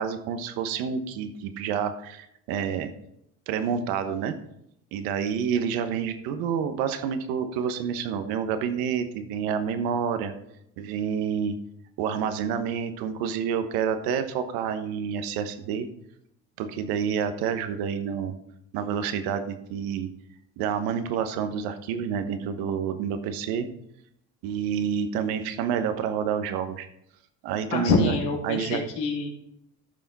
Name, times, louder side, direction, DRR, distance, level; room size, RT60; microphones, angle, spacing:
voice 1, 0.0-2.9 3.5-4.4 4.9-10.3 10.8-11.6 12.0-15.9 16.6-18.3 18.7-20.1 20.6-23.7 24.4-26.9 27.4-28.1 28.4-28.8, right 7 dB, 80° right, 9 dB, 1.2 m, -28 dB
voice 2, 27.7-29.3, left 4 dB, 90° left, 0 dB, 2.5 m, -25 dB
13.5 x 5.8 x 4.1 m, 0.77 s
supercardioid pair, 80°, 35 cm